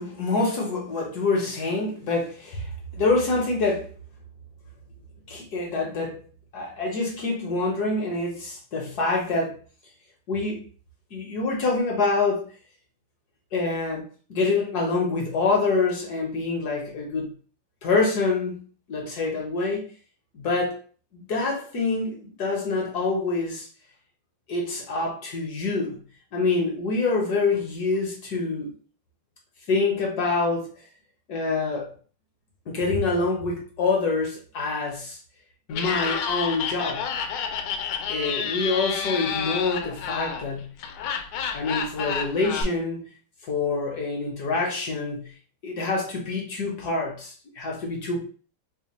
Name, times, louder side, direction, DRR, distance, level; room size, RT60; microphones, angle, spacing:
voice 1, 0.0-3.9 5.3-6.2 6.5-9.6 10.3-10.7 11.1-12.5 13.5-17.3 17.8-18.6 18.9-19.9 20.3-20.8 21.1-23.7 24.5-26.0 26.3-28.7 29.7-30.7 31.3-31.9 32.7-35.2 35.7-37.1 38.1-40.7 41.5-43.1 43.4-45.2 45.6-48.2, left 3 dB, 60° left, 0 dB, 1.2 m, -26 dB
Laughter, 35.7-42.6, left 6 dB, 80° left, 1.4 m, -30 dB
3.4 x 2.2 x 4.1 m, 0.40 s
omnidirectional pair, 2.3 m